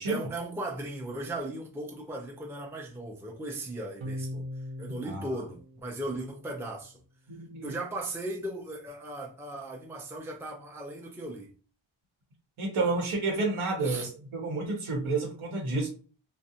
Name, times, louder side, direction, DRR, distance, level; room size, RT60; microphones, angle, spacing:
voice 1, 0.1-4.4 4.8-7.0 7.6-11.5 13.8-14.1, right 1 dB, 5° right, 0.5 m, -37 dB
sound 1, 4.0-6.6, left 1 dB, 70° right, 0.6 m, -40 dB
voice 2, 7.3-7.8 12.6-15.9, right 3 dB, 85° right, 1.0 m, -30 dB
2.4 x 2.1 x 2.7 m
cardioid pair, 60°, 49 cm